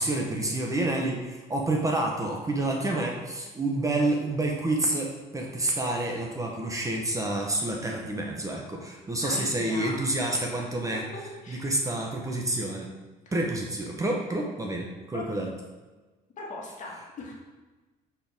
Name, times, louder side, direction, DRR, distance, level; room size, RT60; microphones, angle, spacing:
voice 1, 0.0-11.0 11.5-12.9 13.3-15.5, right 2 dB, 20° right, 0 dB, 0.9 m, -28 dB
voice 2, 9.2-10.1 11.1-11.7 15.1-15.2 16.4-17.3, left 2 dB, 45° left, -2 dB, 1.7 m, -40 dB
7.4 x 4.5 x 3.5 m, 1.2 s
cardioid pair, 110°, 17 cm